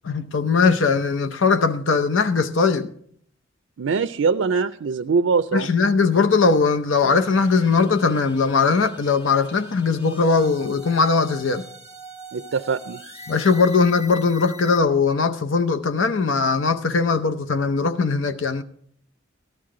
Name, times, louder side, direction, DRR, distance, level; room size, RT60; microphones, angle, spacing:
voice 1, 0.0-2.9 5.5-11.6 13.3-18.6, left 4 dB, 75° left, 0.7 m, -20 dB
voice 2, 3.8-5.7 12.3-13.0, right 5 dB, 80° right, 0.4 m, -22 dB
sound 1, 7.0-14.8, equal, 30° left, 2.1 m, -41 dB
14.5 x 12.0 x 3.7 m
head